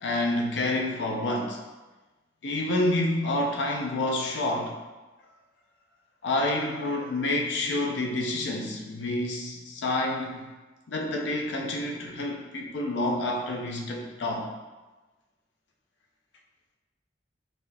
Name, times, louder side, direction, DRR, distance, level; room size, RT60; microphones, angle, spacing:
voice 1, 0.0-1.6 2.4-4.8 6.2-10.5 10.9-14.5, left 1 dB, 80° left, 1 dB, 0.5 m, -28 dB
4.2 x 2.6 x 2.2 m, 1.2 s
head